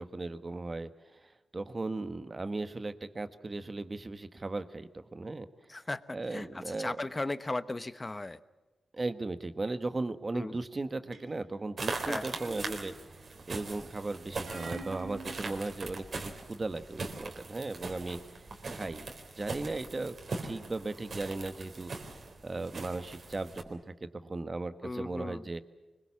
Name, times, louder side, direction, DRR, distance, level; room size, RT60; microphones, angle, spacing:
voice 1, 0.0-5.5 6.1-7.0 8.9-12.9 13.5-18.2 18.7-19.1 19.4-20.2 20.4-22.1 22.4-25.6, right 2 dB, 30° right, 11 dB, 1.4 m, -37 dB
voice 2, 5.7-8.4 10.3-10.6 12.1-12.4 24.8-25.4, left 2 dB, 20° left, 14 dB, 1.0 m, -37 dB
sound 1, 11.1-11.6 12.4-13.2 14.5-15.3, right 2 dB, 75° right, 5.7 m, -44 dB
sound 2, 11.8-23.6, right 3 dB, 50° right, 3.9 m, -41 dB
25.0 x 22.0 x 7.3 m, 1.2 s
wide cardioid pair, 110°, 0 cm